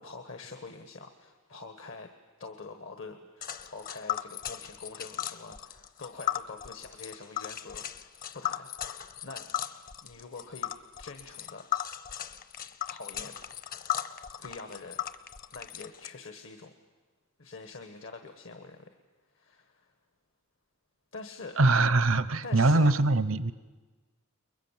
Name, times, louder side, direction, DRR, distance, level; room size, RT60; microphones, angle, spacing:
voice 1, 0.0-2.1 2.4-9.5 10.0-10.7 11.0-11.6 12.9-13.3 14.4-15.0 15.5-16.7 17.4-19.0 19.3-19.9 21.1-21.6 22.4-23.0, left 3 dB, 65° left, 6 dB, 1.4 m, -45 dB
Tick, 3.4-16.1, left 12 dB, 45° left, 0.9 m, -37 dB
voice 2, 21.6-23.5, right 2 dB, 75° right, 15 dB, 0.8 m, -23 dB
29.5 x 22.5 x 7.4 m, 1.3 s
head